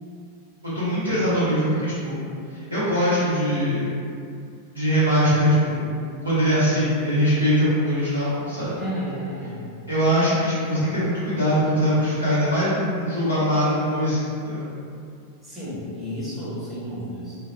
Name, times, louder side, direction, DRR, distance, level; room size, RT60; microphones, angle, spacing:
voice 1, 0.6-2.2 2.5-3.9 4.7-5.9 6.2-8.8 9.9-14.7, equal, 85° right, -13 dB, 0.7 m, -22 dB
voice 2, 8.8-9.6 15.4-17.3, equal, 5° right, -11 dB, 1.0 m, -32 dB
2.7 x 2.2 x 2.3 m, 2.4 s
figure-of-eight pair, 90°, 0 cm